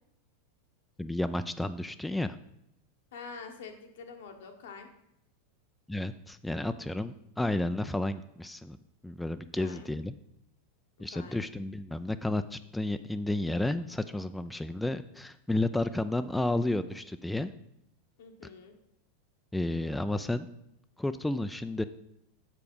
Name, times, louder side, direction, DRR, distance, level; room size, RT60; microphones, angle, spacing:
voice 1, 1.0-2.4 5.9-8.8 9.0-10.1 11.0-17.5 19.5-20.5 21.0-21.8, left 1 dB, 5° left, 10 dB, 0.3 m, -32 dB
voice 2, 3.1-4.9 9.5-9.9 11.1-11.5 18.2-18.7, left 5 dB, 75° left, 4 dB, 1.1 m, -46 dB
6.7 x 4.9 x 5.3 m, 0.81 s
hypercardioid pair, 100°, 0 cm